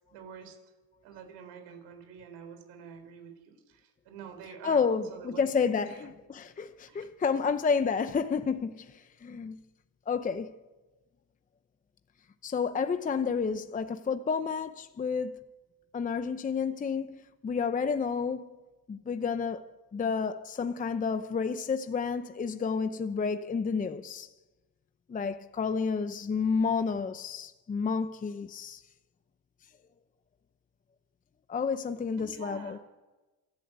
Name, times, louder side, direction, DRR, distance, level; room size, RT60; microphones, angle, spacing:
voice 1, 0.1-0.6 1.0-5.4 5.8-6.1 6.9-7.0 32.2-32.8, right 7 dB, 85° right, 5.0 m, -47 dB
voice 2, 4.6-9.6 10.1-10.5 12.4-15.3 15.9-18.5 18.9-19.6 19.9-24.3 25.1-28.8 31.5-32.8, left 5 dB, 20° left, 0.7 m, -30 dB
27.5 x 12.5 x 8.0 m
cardioid pair, 125°, 40 cm